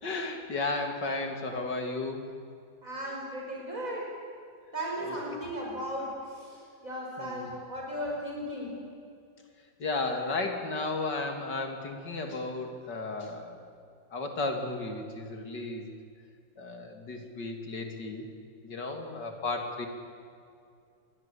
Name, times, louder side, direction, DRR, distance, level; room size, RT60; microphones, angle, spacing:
voice 1, 0.0-2.2 5.0-5.2 7.2-7.5 9.8-13.6 14.1-15.9 16.6-18.3 18.6-19.9, left 3 dB, 70° left, 4 dB, 3.3 m, -34 dB
voice 2, 2.8-4.1 4.7-8.8, equal, 45° right, -2 dB, 5.7 m, -36 dB
27.0 x 21.5 x 8.6 m, 2.4 s
omnidirectional pair, 1.9 m